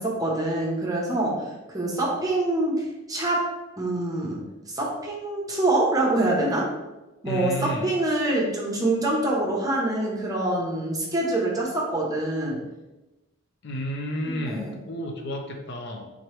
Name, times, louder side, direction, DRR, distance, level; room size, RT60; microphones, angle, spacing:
voice 1, 0.0-1.4 1.7-3.5 3.8-6.7 7.2-12.6 14.3-14.7, right 2 dB, 20° right, -3 dB, 0.8 m, -25 dB
voice 2, 7.2-7.9 13.6-16.1, equal, 60° left, 3 dB, 0.5 m, -32 dB
3.8 x 3.0 x 3.1 m, 1.1 s
head